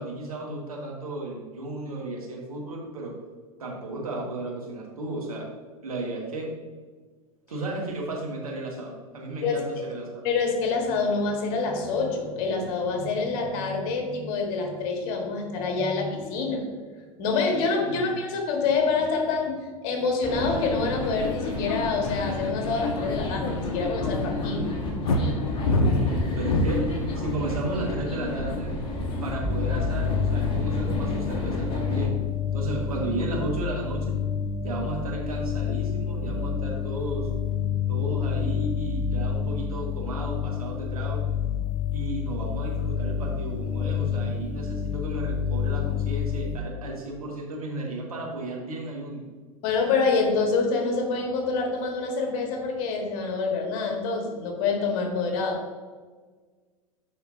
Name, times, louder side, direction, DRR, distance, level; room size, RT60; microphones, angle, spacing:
voice 1, 0.0-3.1 3.6-5.5 5.8-6.5 7.5-10.2 17.9-18.1 25.6-26.8 27.2-28.8 29.2-32.1 32.5-34.2 34.6-37.3 37.9-41.2 41.9-49.2, right 2 dB, 75° right, -1 dB, 1.7 m, -34 dB
voice 2, 10.2-16.6 17.2-24.7 49.6-55.6, left 4 dB, 45° left, 2 dB, 1.6 m, -26 dB
sound 1, 20.2-32.1, left 2 dB, 25° left, 1.5 m, -31 dB
sound 2, 25.1-27.0 27.7-28.1, left 2 dB, 70° left, 0.8 m, -23 dB
sound 3, 29.4-46.6, left 7 dB, 5° left, 0.7 m, -28 dB
11.5 x 4.2 x 2.7 m, 1.5 s
figure-of-eight pair, 90°, 19 cm